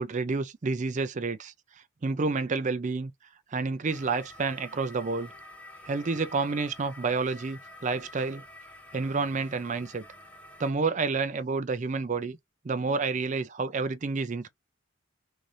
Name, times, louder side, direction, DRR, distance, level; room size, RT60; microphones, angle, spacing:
voice 1, 0.0-1.5 2.0-3.1 3.5-5.3 5.9-8.4 8.9-10.0 10.6-12.4 12.6-14.5, right 4 dB, 35° right, 0.4 m, -29 dB
sound 1, 3.9-10.7, left 1 dB, 5° left, 0.7 m, -49 dB
3.2 x 2.7 x 3.7 m
head